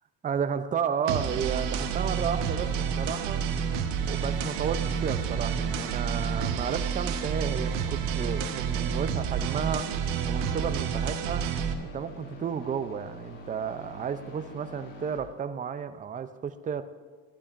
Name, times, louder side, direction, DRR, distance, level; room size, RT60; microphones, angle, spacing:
voice 1, 0.2-3.4 4.1-10.0 10.3-11.5 11.8-16.8, right 7 dB, 20° right, 11 dB, 0.4 m, -32 dB
sound 1, 1.1-11.7, right 7 dB, 80° right, 1.2 m, -29 dB
sound 2, 1.4-15.2, left 1 dB, 80° left, 2.4 m, -45 dB
15.0 x 12.0 x 2.5 m, 1.5 s
supercardioid pair, 105°, 45 cm